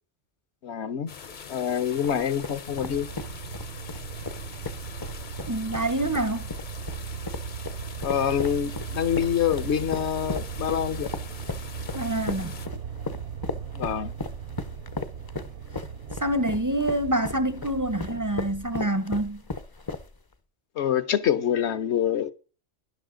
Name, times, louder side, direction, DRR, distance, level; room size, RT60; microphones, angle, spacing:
voice 1, 0.6-1.1 1.5-3.1 8.0-11.1 13.7-14.1 20.8-22.3, left 9 dB, 70° left, 1.1 m, -26 dB
sound 1, 1.1-12.7, left 6 dB, 45° left, 0.8 m, -43 dB
sound 2, 2.0-20.3, left 3 dB, 30° left, 0.4 m, -36 dB
sound 3, 2.7-18.7, right 7 dB, 75° right, 1.0 m, -38 dB
voice 2, 5.5-6.4 11.9-12.5 16.2-19.4, right 1 dB, 25° right, 0.5 m, -26 dB
12.0 x 11.0 x 3.8 m
omnidirectional pair, 1.2 m